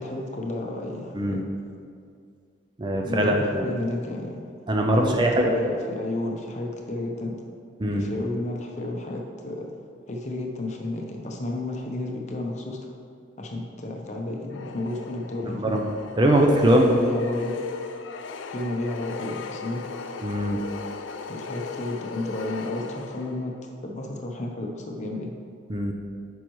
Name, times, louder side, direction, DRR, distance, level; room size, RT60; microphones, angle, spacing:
voice 1, 0.0-1.4 3.0-4.4 5.0-7.4 7.9-9.7 10.1-12.9 13.4-15.8 16.7-17.6 18.5-19.9 21.3-23.5 23.8-25.3, left 2 dB, 35° left, 1 dB, 0.7 m, -32 dB
voice 2, 1.1-1.5 2.8-3.7 4.7-5.5 7.8-8.1 15.4-15.8 16.2-17.1 20.2-20.6 25.7-25.9, right 1 dB, 25° right, 1 dB, 0.4 m, -21 dB
sound 1, 14.5-23.6, left 4 dB, 80° left, 0.4 m, -37 dB
9.1 x 5.4 x 3.1 m, 2.3 s
head